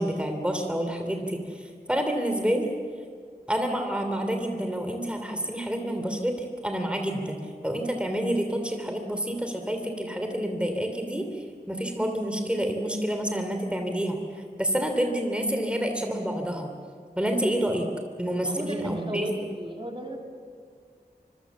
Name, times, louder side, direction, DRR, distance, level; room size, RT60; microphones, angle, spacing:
voice 1, 0.0-2.7 3.5-7.4 7.6-16.7 17.1-17.9 18.2-19.3, right 1 dB, 5° right, 4 dB, 3.0 m, -28 dB
voice 2, 18.4-20.2, right 1 dB, 30° right, 1 dB, 3.4 m, -34 dB
25.5 x 24.0 x 7.2 m, 2.1 s
wide cardioid pair, 50°, 17 cm